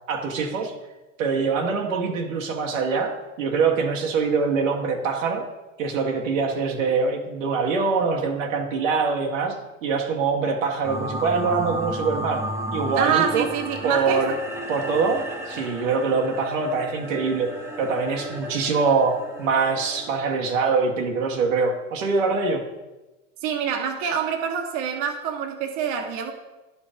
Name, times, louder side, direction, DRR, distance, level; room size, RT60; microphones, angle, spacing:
voice 1, 0.1-0.7 1.2-5.5 5.8-12.4 12.7-13.5 13.8-14.3 14.7-22.6, right 4 dB, 85° right, 2 dB, 1.4 m, -24 dB
sound 1, 10.8-20.1, equal, 5° right, 1.1 m, -33 dB
voice 2, 13.0-14.4 23.4-26.3, right 8 dB, 60° right, 4 dB, 1.3 m, -26 dB
10.5 x 5.0 x 5.1 m, 1.1 s
hypercardioid pair, 105°, 38 cm